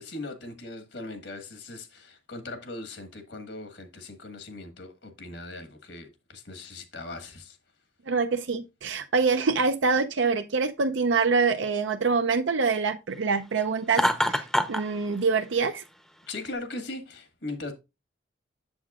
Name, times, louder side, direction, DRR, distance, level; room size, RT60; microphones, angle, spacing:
voice 1, 0.0-7.6 16.3-17.7, left 2 dB, 75° left, 1.6 m, -39 dB
voice 2, 8.1-15.8, right 4 dB, 85° right, 0.5 m, -25 dB
Laughter, 13.9-14.8, equal, ahead, 0.6 m, -24 dB
7.8 x 7.3 x 2.4 m
head